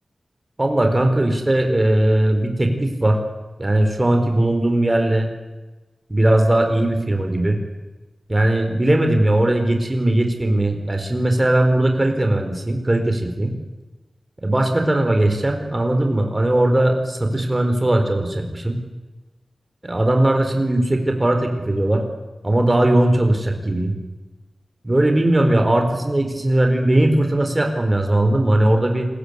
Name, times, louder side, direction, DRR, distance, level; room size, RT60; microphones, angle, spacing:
voice 1, 0.6-3.2 3.6-5.3 6.1-7.6 8.3-13.5 14.4-18.8 19.8-22.0 22.4-23.9 24.8-29.1, right 1 dB, 20° right, 5 dB, 4.6 m, -19 dB
28.5 x 22.0 x 8.4 m, 1.2 s
wide cardioid pair, 100°, 0 cm